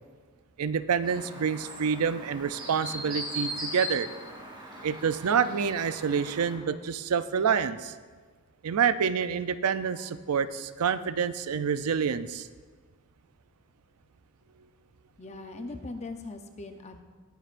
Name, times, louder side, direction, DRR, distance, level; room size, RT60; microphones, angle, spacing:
voice 1, 0.6-4.1 4.8-7.9 8.6-12.5, right 6 dB, 85° right, 13 dB, 0.5 m, -27 dB
Chirp tweet, 1.0-6.5, right 1 dB, 20° right, 2.2 m, -39 dB
voice 2, 15.2-17.0, left 3 dB, 30° left, 6 dB, 0.7 m, -40 dB
17.0 x 9.7 x 2.5 m, 1.5 s
head